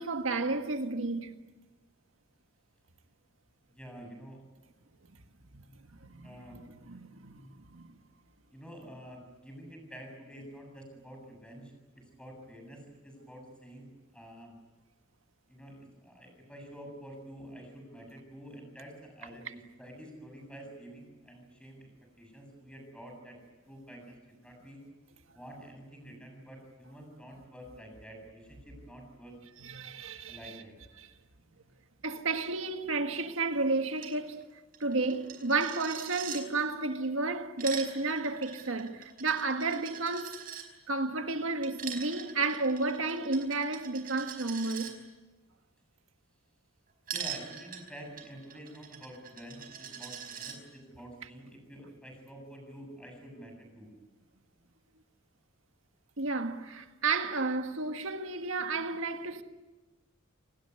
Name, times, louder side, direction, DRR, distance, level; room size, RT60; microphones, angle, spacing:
voice 1, 0.0-1.3 5.5-5.7 6.0-6.3 6.9-7.9 29.6-30.6 31.0-31.1 32.0-34.4 34.8-40.4 40.9-44.9 56.2-59.4, right 3 dB, 75° right, 1.8 m, -32 dB
voice 2, 3.7-4.4 6.2-6.6 8.5-14.5 15.5-21.9 22.2-23.4 23.7-24.8 25.3-29.4 30.3-30.7 47.1-53.9, equal, 5° left, 7.8 m, -48 dB
Coin (dropping), 34.0-34.1 34.4-34.5 34.7-36.4 37.3-40.7 41.6-44.9 47.1-50.6, right 8 dB, 45° right, 5.0 m, -42 dB
28.5 x 19.5 x 9.7 m
head